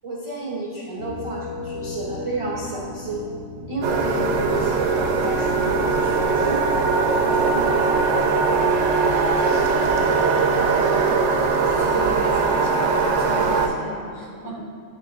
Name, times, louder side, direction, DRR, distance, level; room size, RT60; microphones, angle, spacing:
voice 1, 0.0-3.2 3.7-6.9 7.1-7.8 11.5-12.1 14.5-14.6, right 3 dB, 35° right, -4 dB, 0.5 m, -31 dB
sound 1, 1.0-9.7, left 3 dB, 50° left, 0.9 m, -37 dB
sound 2, 3.8-13.7, right 4 dB, 65° right, 0.8 m, -20 dB
voice 2, 9.4-10.2 11.7-14.6, right 1 dB, 75° left, -6 dB, 1.9 m, -37 dB
9.5 x 3.6 x 3.9 m, 2.1 s
omnidirectional pair, 1.4 m